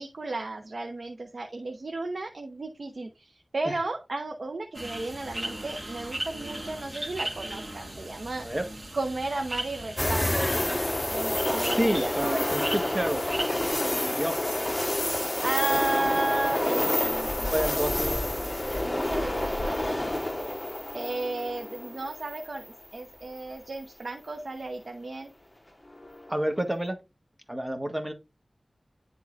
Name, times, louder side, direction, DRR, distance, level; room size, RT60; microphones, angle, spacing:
voice 1, 0.0-8.5 8.9-10.3 11.1-12.5 15.4-17.8 18.8-19.8 20.9-25.3, right 2 dB, 70° right, 0.9 m, -33 dB
sound 1, 4.7-13.7, right 1 dB, 40° right, 2.0 m, -37 dB
sound 2, 10.0-23.0 23.4-23.5 25.9-26.3, left 1 dB, 25° left, 1.3 m, -29 dB
voice 2, 11.7-13.2 13.8-14.4 17.5-18.2 26.3-27.0 27.5-28.1, right 1 dB, 20° right, 1.6 m, -29 dB
10.5 x 3.8 x 2.5 m
wide cardioid pair, 50°, 0 cm